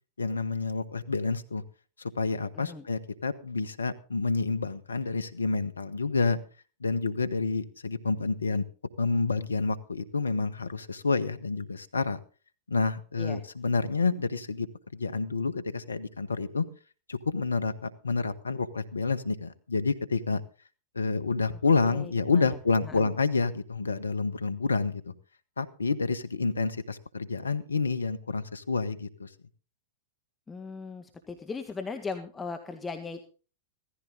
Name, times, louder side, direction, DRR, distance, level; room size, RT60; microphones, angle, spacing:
voice 1, 0.2-1.6 2.0-6.4 6.8-8.6 9.0-12.2 12.7-14.7 14.9-16.6 17.1-20.4 20.9-25.1 25.6-29.3, left 4 dB, 90° left, 14 dB, 1.2 m, -29 dB
voice 2, 21.8-22.6 22.8-23.1 30.5-33.2, left 4 dB, 15° left, 6 dB, 1.7 m, -38 dB
16.5 x 14.5 x 3.8 m, 0.36 s
hypercardioid pair, 100°, 0 cm